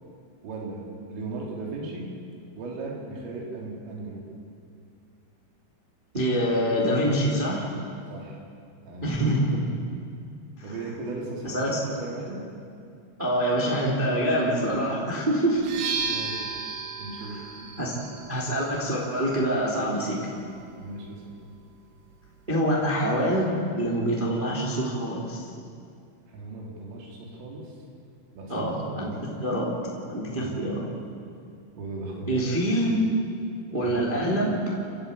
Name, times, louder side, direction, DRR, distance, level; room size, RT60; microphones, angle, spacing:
voice 1, 0.4-0.8 1.1-2.1 2.5-4.2 8.1-8.4 8.8-9.2 10.6-12.4 16.1-16.5 17.0-17.7 20.8-21.3 26.3-27.7 28.3-29.2 30.3-30.6 31.7-32.4 33.8-34.1, right 3 dB, 85° right, -1 dB, 6.3 m, -37 dB
voice 2, 6.1-7.7 9.0-9.6 11.4-11.8 13.2-15.6 17.3-17.4 17.8-17.9 18.3-20.2 22.5-25.5 28.5-29.1 29.4-29.7 30.1-30.8 32.3-33.0 33.7-34.6, equal, 15° right, -3 dB, 2.3 m, -25 dB
sound 1, 15.6-23.3, right 5 dB, 65° right, 4.0 m, -37 dB
30.0 x 13.5 x 8.5 m, 2.4 s
omnidirectional pair, 5.7 m